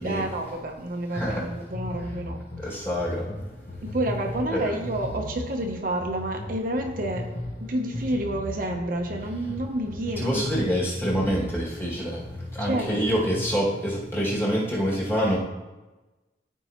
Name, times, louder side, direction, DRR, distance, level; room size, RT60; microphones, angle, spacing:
voice 1, 0.0-2.4 3.8-7.3 7.7-10.8 12.6-13.0, right 1 dB, 50° right, 2 dB, 0.7 m, -29 dB
sound 1, 1.2-13.6, left 1 dB, 45° left, 0.9 m, -36 dB
voice 2, 2.7-3.2 4.5-4.7 10.2-12.2 12.6-15.4, equal, 15° left, -6 dB, 2.0 m, -26 dB
13.0 x 4.6 x 2.9 m, 1.1 s
head